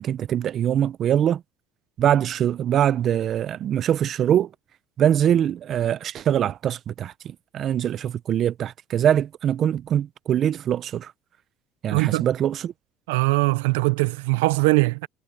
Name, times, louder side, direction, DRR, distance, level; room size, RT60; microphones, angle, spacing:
voice 1, 0.0-1.4 2.0-4.5 5.0-11.1 11.8-12.7, right 10 dB, 50° right, 0.6 m, -23 dB
voice 2, 11.9-12.3 13.1-15.1, right 25 dB, 85° right, 0.7 m, -21 dB
supercardioid pair, 90°, 0 cm